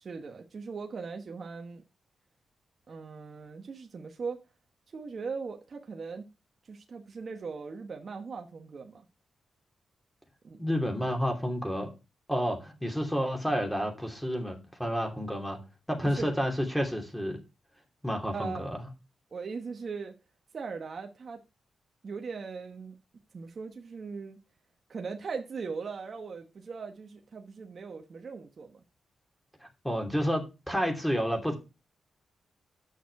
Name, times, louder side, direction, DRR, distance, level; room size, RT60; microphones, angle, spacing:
voice 1, 0.0-1.8 2.9-4.4 4.9-6.3 6.6-9.0 10.4-10.6 16.0-16.3 18.3-18.6 19.3-20.1 20.5-21.4 22.0-23.0 23.3-24.4 24.9-28.8, right 5 dB, 50° right, 1.1 m, -39 dB
voice 2, 10.6-11.9 12.3-15.6 15.9-17.4 18.0-18.9 29.6-31.6, equal, 5° left, 2.9 m, -30 dB
9.0 x 6.5 x 4.8 m
cardioid pair, 100°, 0 cm